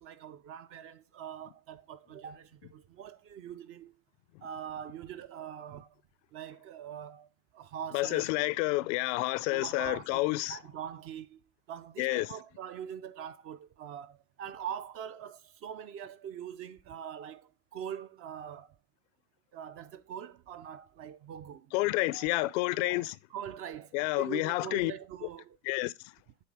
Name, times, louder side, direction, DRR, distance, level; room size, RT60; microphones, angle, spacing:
voice 1, 0.0-3.9 4.4-5.9 6.3-7.3 7.5-8.3 9.5-11.4 11.7-18.8 19.5-21.7 22.1-22.5 22.8-25.6, right 9 dB, 35° right, 0.4 m, -43 dB
voice 2, 7.9-10.6 12.0-12.3 21.7-23.1 23.9-24.9 25.7-25.9, left 20 dB, 60° left, 0.5 m, -29 dB
8.3 x 3.2 x 4.7 m
hypercardioid pair, 105°, 43 cm